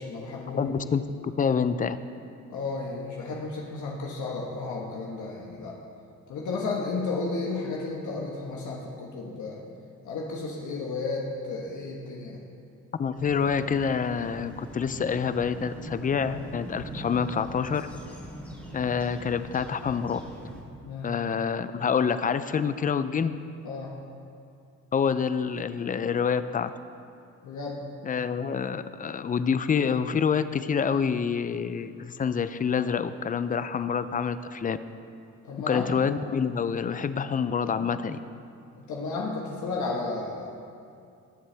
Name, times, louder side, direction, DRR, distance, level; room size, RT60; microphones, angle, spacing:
voice 1, 0.0-0.7 2.5-5.8 6.3-9.6 10.0-12.4 20.8-21.1 23.6-23.9 27.4-27.8 35.4-35.9 37.7-37.9 38.7-40.6, left 3 dB, 75° left, -2 dB, 1.4 m, -33 dB
voice 2, 0.6-2.0 13.0-17.9 18.7-20.2 21.0-23.3 24.9-26.7 28.0-34.8 35.7-38.2, left 6 dB, 30° left, 13 dB, 0.5 m, -27 dB
sound 1, 13.2-20.6, right 1 dB, 5° left, 2.5 m, -42 dB
20.0 x 7.5 x 3.4 m, 2.5 s
cardioid pair, 90°, 30 cm